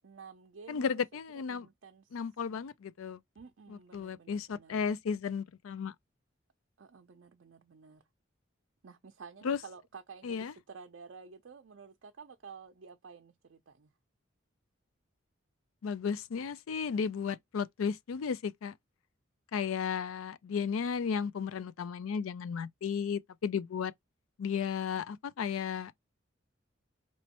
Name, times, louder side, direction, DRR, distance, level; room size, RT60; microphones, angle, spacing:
voice 1, 0.0-0.9 1.5-2.2 3.4-4.8 6.8-8.0 8.8-13.9, right 5 dB, 65° right, 0.5 m, -52 dB
voice 2, 0.7-1.7 2.1-3.2 3.7-5.9 9.4-9.6 10.2-10.5 15.8-18.7 19.5-23.9 24.4-25.9, left 6 dB, 90° left, 0.4 m, -34 dB
4.3 x 3.0 x 2.9 m
head